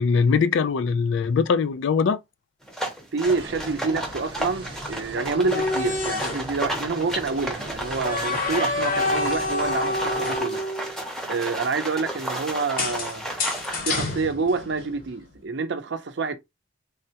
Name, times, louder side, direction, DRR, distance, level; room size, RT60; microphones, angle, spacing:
voice 1, 0.0-2.2, left 5 dB, 70° left, 0.3 m, -21 dB
sound 1, 2.7-13.8, equal, 5° left, 0.6 m, -33 dB
voice 2, 3.1-10.7 11.3-13.3 13.8-16.4, right 4 dB, 60° right, 0.5 m, -27 dB
sound 2, 3.2-10.4, right 2 dB, 25° right, 0.8 m, -39 dB
sound 3, 5.3-6.5 8.0-11.0 12.8-15.0, left 2 dB, 45° left, 0.8 m, -27 dB
3.4 x 2.1 x 2.8 m
head